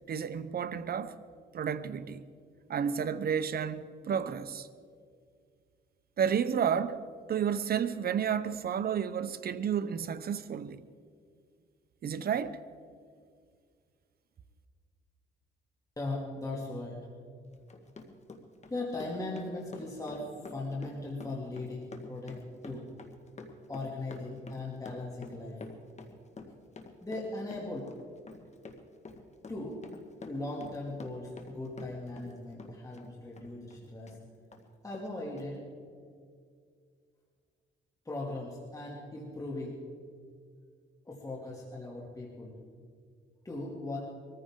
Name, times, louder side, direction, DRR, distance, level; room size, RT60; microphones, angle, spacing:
voice 1, 0.1-1.2 1.5-2.2 2.7-4.7 6.2-10.8 12.0-12.6, right 7 dB, 50° right, 0.8 m, -31 dB
voice 2, 16.0-17.1 18.7-22.9 23.7-25.6 27.0-27.9 29.5-29.8 30.2-34.2 34.8-35.7 36.0-36.1 38.0-39.8 41.0-42.5 43.4-44.0, left 2 dB, 15° left, 2.7 m, -38 dB
Run, 17.5-32.3 32.6-34.2 34.5-34.6 34.9-35.1 35.4-35.5, left 3 dB, 35° left, 1.7 m, -48 dB
23.5 x 14.5 x 3.8 m
cardioid pair, 90°, 20 cm